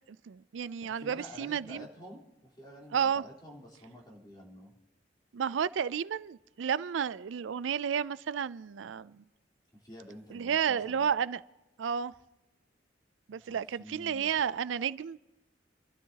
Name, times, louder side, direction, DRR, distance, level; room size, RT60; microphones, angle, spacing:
voice 1, 0.1-1.9 2.9-3.2 5.3-9.2 10.3-11.4 11.8-12.1 13.3-15.2, right 7 dB, 80° right, 0.4 m, -32 dB
voice 2, 0.8-4.8 9.7-11.1 13.3-14.3, equal, 25° left, 3.7 m, -50 dB
28.5 x 13.0 x 2.9 m
head